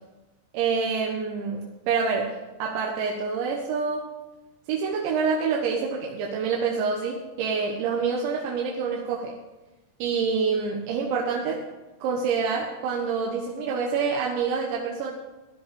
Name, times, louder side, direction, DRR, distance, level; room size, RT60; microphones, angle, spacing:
voice 1, 0.5-4.1 4.7-9.4 10.0-11.7 12.0-15.1, right 5 dB, 90° right, -2 dB, 3.6 m, -27 dB
15.5 x 11.0 x 5.3 m, 1.1 s
omnidirectional pair, 5.1 m